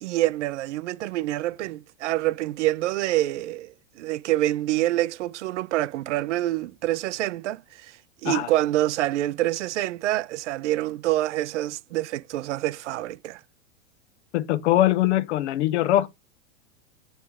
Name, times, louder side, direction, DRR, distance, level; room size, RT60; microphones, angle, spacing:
voice 1, 0.0-8.0 8.2-13.4, right 15 dB, 75° right, 0.6 m, -26 dB
voice 2, 14.3-16.1, left 14 dB, 70° left, 0.9 m, -22 dB
9.1 x 3.2 x 4.8 m
supercardioid pair, 140°, 36 cm